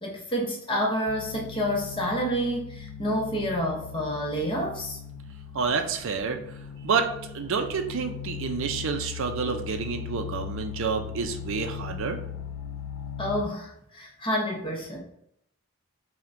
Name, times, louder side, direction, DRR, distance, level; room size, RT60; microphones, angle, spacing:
voice 1, 0.0-5.0 9.4-9.6 13.2-15.0, equal, 20° left, -1 dB, 0.7 m, -29 dB
sound 1, 1.1-13.4, left 8 dB, 70° left, 0.3 m, -39 dB
voice 2, 5.5-6.4 6.8-12.2, right 5 dB, 60° right, 6 dB, 0.4 m, -29 dB
5.6 x 2.1 x 2.5 m, 0.75 s
head